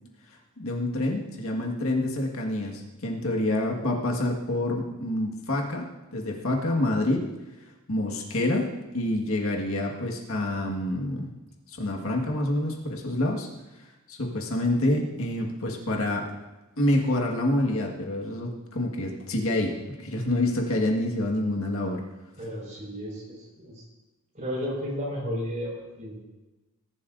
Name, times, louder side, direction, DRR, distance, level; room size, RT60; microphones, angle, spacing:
voice 1, 0.6-7.3 7.9-11.3 11.7-13.5 14.1-16.3 16.8-22.0, left 1 dB, 70° left, 0 dB, 1.7 m, -27 dB
voice 2, 22.4-23.8 24.3-26.2, equal, 35° right, -4 dB, 5.2 m, -33 dB
19.5 x 11.5 x 2.6 m, 1.1 s
head